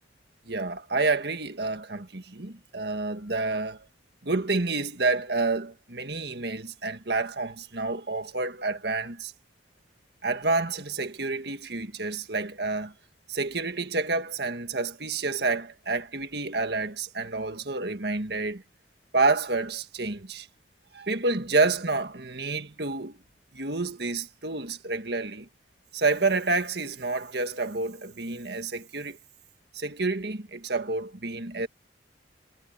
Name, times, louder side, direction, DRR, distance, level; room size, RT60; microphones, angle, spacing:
voice 1, 0.5-3.9 4.2-9.3 10.2-12.9 13.3-18.6 19.1-20.5 20.9-23.2 23.5-25.5 25.9-29.2 29.7-31.7, right 3 dB, 60° right, 1.8 m, -29 dB
head